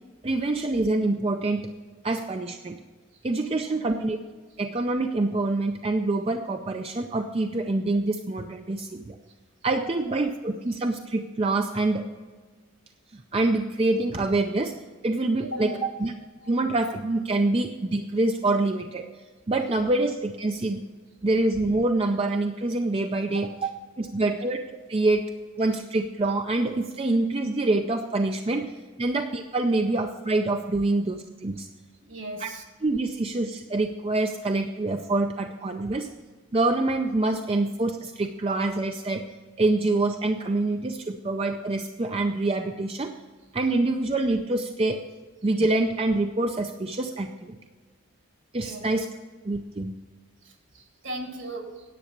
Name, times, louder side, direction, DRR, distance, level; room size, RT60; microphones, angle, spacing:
voice 1, 0.2-1.6 2.0-2.8 3.2-4.2 4.6-9.2 9.6-12.1 13.1-14.7 15.0-15.7 16.0-16.1 16.5-19.1 19.5-20.8 21.2-23.7 24.0-25.2 25.6-28.7 29.0-31.7 32.4-32.5 32.8-36.1 36.5-39.2 39.6-43.1 43.5-45.0 45.4-47.6 48.5-49.1 49.4-49.9, right 2 dB, 25° right, 5 dB, 0.4 m, -26 dB
voice 2, 15.4-15.7 16.4-16.5 23.4-23.5 32.1-32.6 48.6-48.8 50.4-51.8, right 1 dB, 60° right, 4 dB, 1.9 m, -37 dB
10.0 x 8.3 x 6.5 m, 1.4 s
head